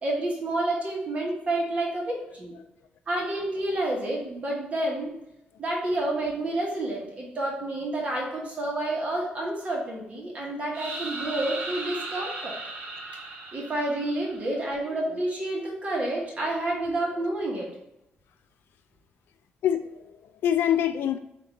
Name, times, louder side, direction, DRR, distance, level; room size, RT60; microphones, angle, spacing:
voice 1, 0.0-2.5 3.1-5.1 5.6-12.6 13.5-17.7, right 1 dB, 35° right, -3 dB, 1.3 m, -29 dB
sound 1, 10.7-14.6, right 2 dB, 75° right, 1.0 m, -37 dB
voice 2, 15.0-15.6 17.1-17.3 19.6-21.2, left 10 dB, 80° left, 9 dB, 0.4 m, -27 dB
3.7 x 2.6 x 4.6 m, 0.83 s
cardioid pair, 125°, 4 cm